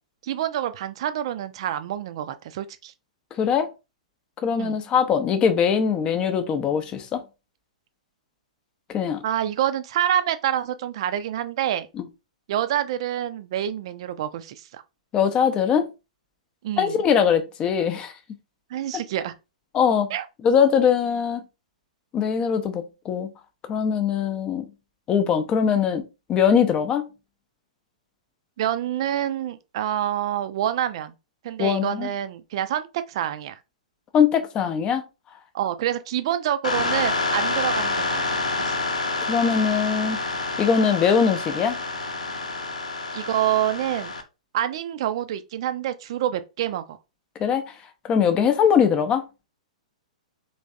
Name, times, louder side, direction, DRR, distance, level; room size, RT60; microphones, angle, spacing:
voice 1, 0.2-2.9 4.6-4.7 9.2-11.9 12.5-14.8 16.6-17.0 18.7-19.3 20.1-20.3 28.6-31.1 31.4-33.6 35.5-38.7 43.1-44.1 44.5-47.0, right 11 dB, 50° right, 0.4 m, -27 dB
voice 2, 3.4-3.7 4.4-7.2 8.9-9.2 15.1-15.9 16.8-18.1 19.7-20.1 20.4-21.4 22.1-23.3 23.7-24.7 25.1-26.0 26.3-27.1 31.6-32.1 34.1-35.0 39.3-40.2 40.6-41.8 47.4-47.6 48.0-49.2, left 7 dB, 25° left, 0.6 m, -21 dB
sound 1, 36.6-44.2, left 3 dB, 70° left, 0.7 m, -27 dB
3.3 x 3.0 x 2.6 m
figure-of-eight pair, 110°, 4 cm